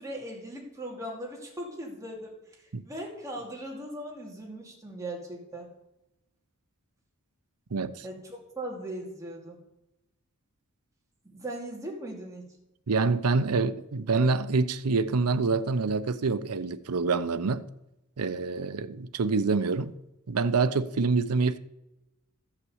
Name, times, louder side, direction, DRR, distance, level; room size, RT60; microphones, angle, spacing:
voice 1, 0.0-5.7 8.0-9.6 11.2-12.5, right 1 dB, 15° right, 2.7 m, -39 dB
voice 2, 7.7-8.0 12.9-17.7 18.2-19.9 20.3-21.6, right 4 dB, 90° right, 0.6 m, -26 dB
13.5 x 5.9 x 7.9 m
head